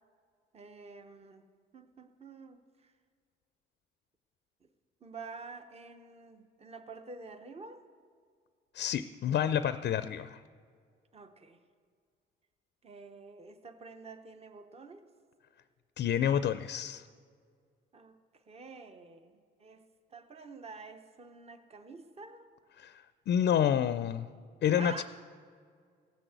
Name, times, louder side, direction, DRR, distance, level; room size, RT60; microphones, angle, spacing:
voice 1, 0.5-1.4 1.7-2.6 5.0-7.8 11.1-11.6 12.8-15.0 17.9-18.1 18.5-19.9 20.1-22.5 24.7-25.0, right 4 dB, 30° right, 8 dB, 0.9 m, -48 dB
voice 2, 8.7-10.4 16.0-17.0 22.8-24.3 24.6-25.0, left 9 dB, 60° left, 13 dB, 0.4 m, -29 dB
16.0 x 6.2 x 8.0 m, 2.1 s
cardioid pair, 90°, 20 cm